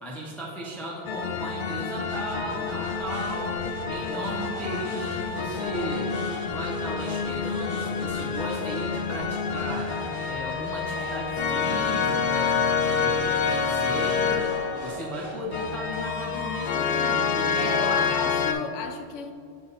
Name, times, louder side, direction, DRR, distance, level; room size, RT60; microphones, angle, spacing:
voice 1, 0.0-3.5 3.9-6.1 6.5-9.9 10.2-12.6 12.9-14.5 14.8-18.2, equal, ahead, -4 dB, 0.6 m, -36 dB
sound 1, 1.1-18.5, left 6 dB, 55° left, 0.5 m, -28 dB
sound 2, 2.0-16.7, right 1 dB, 55° right, 1.1 m, -41 dB
sound 3, 5.6-8.4 9.2-13.7 14.5-16.3, right 4 dB, 75° right, 1.3 m, -47 dB
voice 2, 17.5-19.3, left 6 dB, 90° left, 7 dB, 0.9 m, -34 dB
7.2 x 4.1 x 4.0 m, 2.3 s
omnidirectional pair, 1.2 m